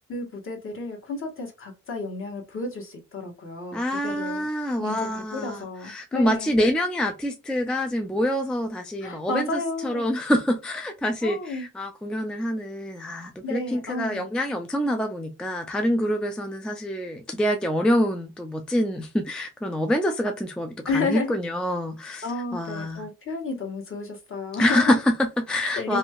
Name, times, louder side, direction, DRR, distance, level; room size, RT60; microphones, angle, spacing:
voice 1, 0.1-4.5 4.8-6.5 9.0-10.0 11.2-11.7 13.4-14.3 20.9-21.3 22.2-25.0 25.8-26.0, left 3 dB, 45° left, 1.3 m, -32 dB
voice 2, 3.7-23.0 24.6-26.0, equal, 5° left, 0.4 m, -26 dB
2.8 x 2.3 x 2.9 m
cardioid pair, 90°, 30 cm